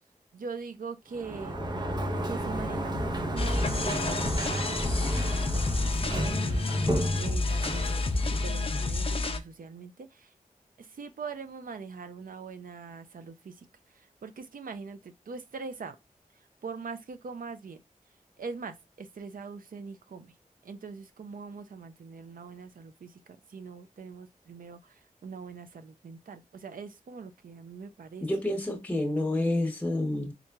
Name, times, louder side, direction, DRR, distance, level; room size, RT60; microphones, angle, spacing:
voice 1, 0.3-1.6 2.2-10.3 10.8-16.0 16.6-17.8 18.4-20.3 20.6-28.3, right 5 dB, 80° right, 0.5 m, -42 dB
Sliding door, 1.1-8.9, right 1 dB, 30° right, 0.6 m, -32 dB
sound 1, 3.4-9.4, left 3 dB, 40° left, 0.4 m, -29 dB
voice 2, 28.2-30.3, left 1 dB, 10° left, 0.9 m, -28 dB
3.7 x 3.0 x 2.2 m
wide cardioid pair, 90°, 14 cm